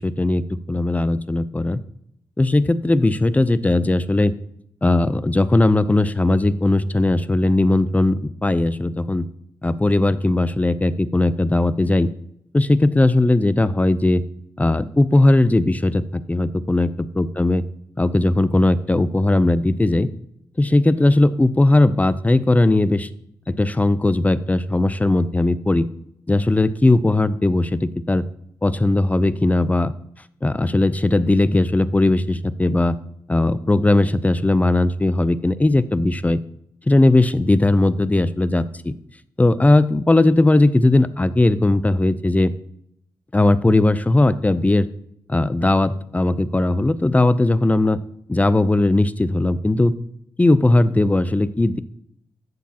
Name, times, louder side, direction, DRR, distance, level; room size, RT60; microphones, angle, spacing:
voice 1, 0.0-1.8 2.4-4.3 4.8-9.3 9.6-12.1 12.5-14.2 14.6-17.6 18.0-20.1 20.6-23.1 23.5-25.9 26.3-28.2 28.6-29.9 30.4-33.0 33.3-36.4 36.9-38.9 39.4-42.5 43.3-44.9 45.3-48.0 48.3-50.0 50.4-51.8, left 2 dB, 20° left, 14 dB, 0.6 m, -18 dB
11.5 x 7.2 x 2.9 m, 0.72 s
cardioid pair, 60°, 8 cm